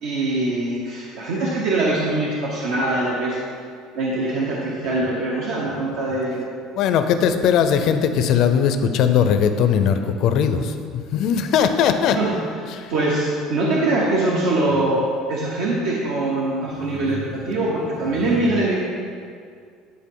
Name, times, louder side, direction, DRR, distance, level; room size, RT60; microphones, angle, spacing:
voice 1, 0.0-3.4 3.9-6.5 12.1-12.3 12.9-15.0 15.3-18.7, right 2 dB, 70° right, -4 dB, 1.0 m, -23 dB
voice 2, 6.8-12.2 12.7-12.9 16.9-17.3, left 7 dB, 55° left, 8 dB, 0.5 m, -19 dB
10.5 x 4.0 x 3.8 m, 2.2 s
cardioid pair, 155°, 0 cm